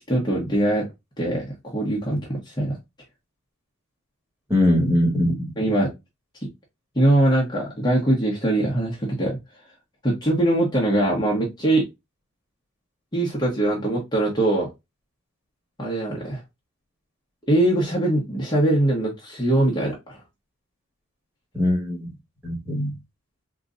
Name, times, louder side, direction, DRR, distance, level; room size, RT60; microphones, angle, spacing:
voice 1, 0.1-0.9 1.2-1.5 1.7-2.8 5.6-5.9 6.9-9.4 10.0-11.9 13.1-14.7 15.8-16.4 17.5-20.2, right 1 dB, 20° left, 0.9 m, -22 dB
voice 2, 4.5-5.5 21.5-22.1 22.4-23.0, left 1 dB, 10° right, 1.6 m, -21 dB
3.8 x 2.9 x 2.5 m
head